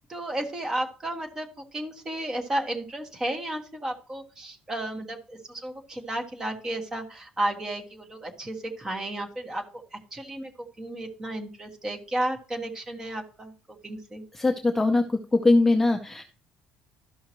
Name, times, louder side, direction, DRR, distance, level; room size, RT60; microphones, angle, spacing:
voice 1, 0.1-13.5 13.8-14.2, right 1 dB, 15° right, 2 dB, 1.4 m, -33 dB
voice 2, 14.4-15.0 15.3-16.2, left 2 dB, 10° left, 3 dB, 0.5 m, -21 dB
12.5 x 5.6 x 3.0 m, 0.38 s
cardioid pair, 175°, 3 cm